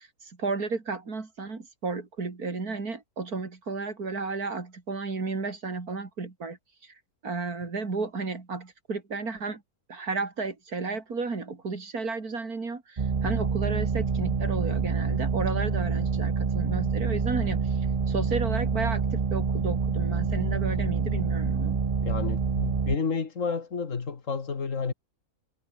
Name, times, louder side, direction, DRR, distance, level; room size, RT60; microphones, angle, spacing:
voice 1, 0.0-6.6 6.8-6.9 7.2-9.6 9.9-17.7 18.1-21.8, right 4 dB, 90° right, 3.7 m, -33 dB
sound 1, 13.0-23.0, right 5 dB, 30° right, 0.7 m, -27 dB
voice 2, 22.0-24.9, left 5 dB, 60° left, 2.2 m, -30 dB
omnidirectional pair, 1.5 m